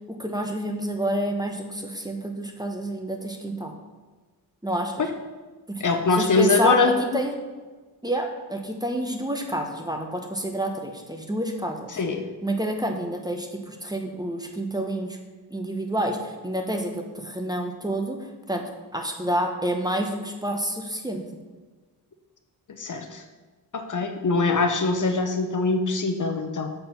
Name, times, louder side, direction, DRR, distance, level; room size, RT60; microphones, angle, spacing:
voice 1, 0.1-3.7 4.6-5.1 5.7-5.8 6.1-7.3 8.0-12.0 12.4-15.2 15.5-18.2 18.5-18.6 18.9-21.2, right 1 dB, 10° right, 4 dB, 0.9 m, -28 dB
voice 2, 5.8-7.2 11.9-12.3 22.8-23.2 23.7-26.7, left 3 dB, 50° left, 6 dB, 0.8 m, -23 dB
7.2 x 4.6 x 5.7 m, 1.3 s
cardioid pair, 85°, 40 cm